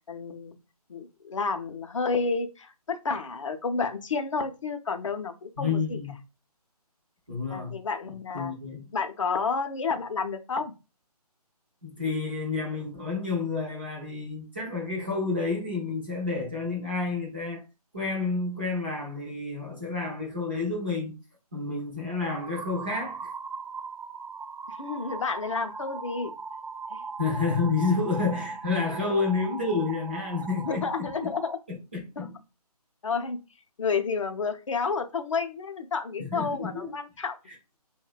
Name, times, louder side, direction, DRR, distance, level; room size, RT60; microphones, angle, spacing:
voice 1, 0.1-0.6 0.9-6.0 7.5-8.5 8.9-10.7 24.7-26.3 26.9-27.0 30.6-31.6 32.2-32.3 33.0-33.4 33.8-37.4, left 4 dB, 50° left, 0.5 m, -30 dB
voice 2, 5.6-6.1 7.3-7.8 8.3-8.9 11.8-17.6 17.9-21.1 21.5-23.3 27.2-31.3 31.7-32.3 36.2-36.9, left 4 dB, 15° right, 0.4 m, -30 dB
sound 1, 22.2-31.5, right 4 dB, 90° right, 0.5 m, -39 dB
2.7 x 2.1 x 2.3 m
figure-of-eight pair, 155°, 20 cm